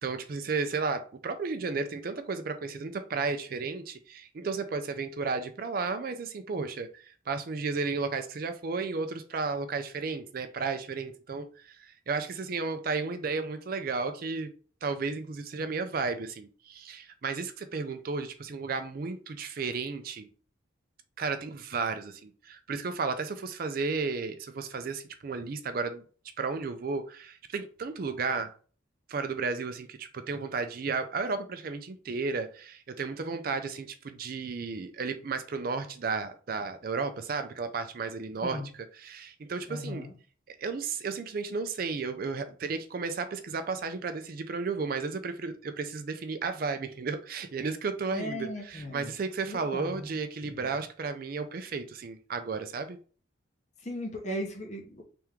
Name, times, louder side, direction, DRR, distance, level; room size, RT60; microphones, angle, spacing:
voice 1, 0.0-14.5 14.8-20.3 21.2-26.0 26.4-28.5 29.1-38.6 39.0-40.1 40.5-53.0, right 4 dB, 45° right, 0.4 m, -33 dB
voice 2, 39.7-40.1 48.1-49.1 49.5-50.2 50.4-50.7 53.8-55.0, equal, 35° left, 0.8 m, -37 dB
3.4 x 3.0 x 3.5 m
head